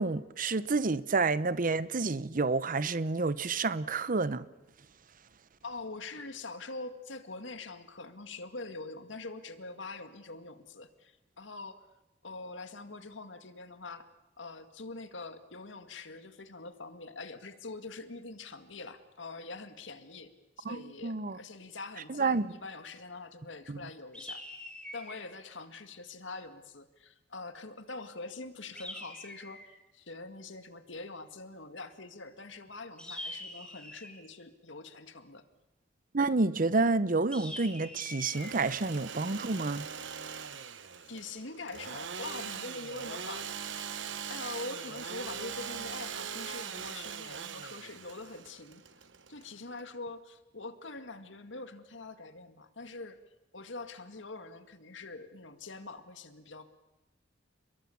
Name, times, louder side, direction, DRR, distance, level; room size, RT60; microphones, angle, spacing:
voice 1, 0.0-4.4 20.6-21.4 22.1-22.5 23.7-23.8 36.1-39.9, right 3 dB, 45° right, 0.8 m, -29 dB
voice 2, 5.6-11.9 12.2-14.1 14.4-20.3 20.6-24.4 24.9-29.6 29.9-35.4 41.0-43.5 44.3-48.8 49.3-53.2 53.5-56.7, left 3 dB, 80° left, 2.0 m, -44 dB
sound 1, 24.1-25.3 28.7-29.8 33.0-34.2 37.3-38.5, left 1 dB, 5° left, 3.8 m, -44 dB
Engine / Sawing, 38.1-49.8, right 7 dB, 75° right, 1.2 m, -41 dB
29.5 x 22.0 x 7.2 m
head